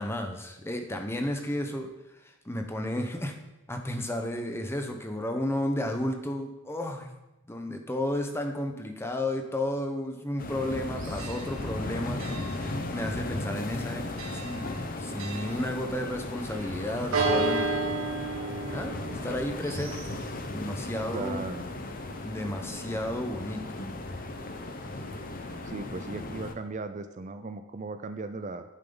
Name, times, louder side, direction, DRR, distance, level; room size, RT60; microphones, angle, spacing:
voice 1, 0.0-1.9 2.4-3.4 3.7-7.1 7.5-17.9 18.7-19.0 19.2-20.2 20.5-21.4 22.2-24.0, left 1 dB, 10° left, 4 dB, 1.0 m, -33 dB
sound 1, 10.4-26.5, left 2 dB, 45° left, 0.8 m, -36 dB
Church bell, 10.6-25.6, right 3 dB, 80° right, 1.8 m, -36 dB
voice 2, 21.1-21.7 25.6-28.6, right 3 dB, 35° right, 9 dB, 0.5 m, -37 dB
11.0 x 8.8 x 3.9 m, 0.97 s
head